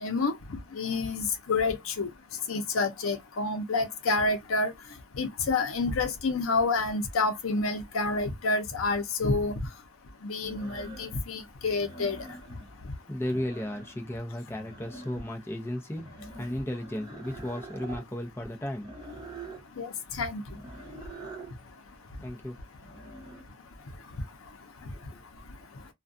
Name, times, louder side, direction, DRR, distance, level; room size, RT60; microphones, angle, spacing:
voice 1, 0.0-2.1 2.5-4.7 5.2-9.5 10.2-12.2 19.8-20.4, left 3 dB, 85° left, 0.6 m, -28 dB
sound 1, 9.0-9.1 10.3-11.3 11.7-12.8 13.1-14.1 14.4-15.4 15.9-18.1 18.8-19.6 20.5-21.5 22.7-23.4, right 2 dB, 20° right, 1.0 m, -45 dB
voice 2, 13.1-19.2 22.2-22.6 24.9-25.2, left 1 dB, 10° left, 0.6 m, -35 dB
2.4 x 2.2 x 2.5 m
head